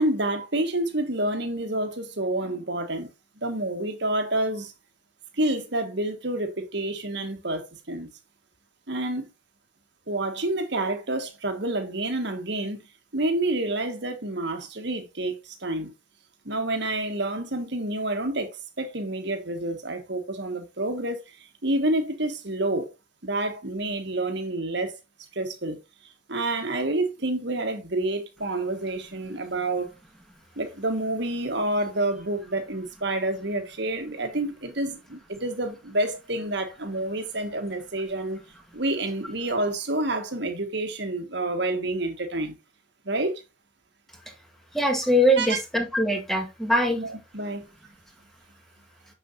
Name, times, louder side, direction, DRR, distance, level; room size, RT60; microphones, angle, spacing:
voice 1, 0.0-3.1 3.4-4.7 5.3-8.1 8.9-9.3 10.1-12.8 13.1-15.9 16.4-22.9 23.2-24.9 25.3-29.9 30.5-38.4 38.7-42.5 43.0-43.4 45.4-45.6 47.0-47.7, right 1 dB, 55° right, 1.6 m, -28 dB
voice 2, 44.7-47.0, equal, ahead, 1.5 m, -22 dB
7.2 x 6.8 x 2.7 m
head